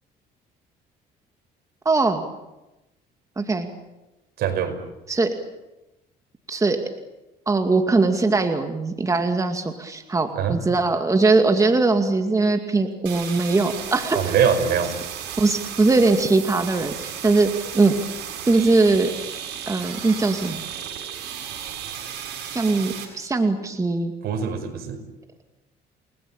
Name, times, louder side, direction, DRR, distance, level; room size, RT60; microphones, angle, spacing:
voice 1, 1.8-2.2 3.4-3.7 5.1-5.3 6.5-6.8 7.5-14.2 15.4-17.9 18.4-19.1 19.7-20.6 22.5-24.1, right 3 dB, 20° right, 5 dB, 2.3 m, -21 dB
voice 2, 4.4-4.8 10.4-10.6 14.1-14.9 24.2-25.0, right 7 dB, 70° right, 7 dB, 5.4 m, -22 dB
sound 1, 13.1-23.1, right 9 dB, 85° right, 7.1 m, -34 dB
30.0 x 20.5 x 8.8 m, 0.99 s
cardioid pair, 110°, 17 cm